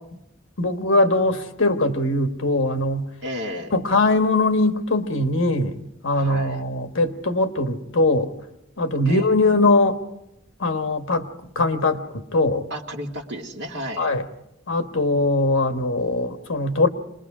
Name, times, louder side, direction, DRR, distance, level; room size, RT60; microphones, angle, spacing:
voice 1, 0.6-3.1 3.7-5.8 6.0-8.3 8.8-10.0 10.6-11.3 11.5-12.7 14.0-14.3 14.7-16.9, left 2 dB, 65° left, 7 dB, 1.4 m, -21 dB
voice 2, 3.2-3.7 6.1-6.6 9.0-9.3 12.7-14.1, equal, 55° right, 1 dB, 2.2 m, -32 dB
27.0 x 21.0 x 4.9 m, 0.83 s
head